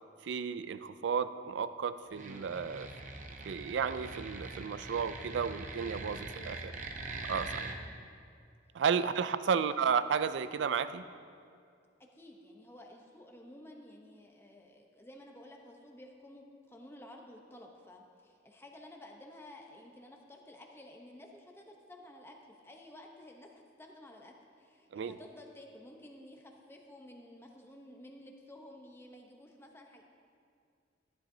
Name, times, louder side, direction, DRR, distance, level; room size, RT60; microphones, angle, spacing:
voice 1, 0.2-2.9 3.5-6.7 7.3-7.7 8.7-11.0 24.9-25.2, right 6 dB, 65° right, 13 dB, 0.3 m, -33 dB
sound 1, 2.1-7.8, right 3 dB, 40° right, 0.7 m, -43 dB
voice 2, 2.3-2.6 6.1-6.6 7.7-7.9 8.9-9.1 9.5-9.7 12.1-30.1, left 1 dB, 10° left, 1 dB, 0.8 m, -53 dB
13.0 x 10.0 x 2.7 m, 2.3 s
head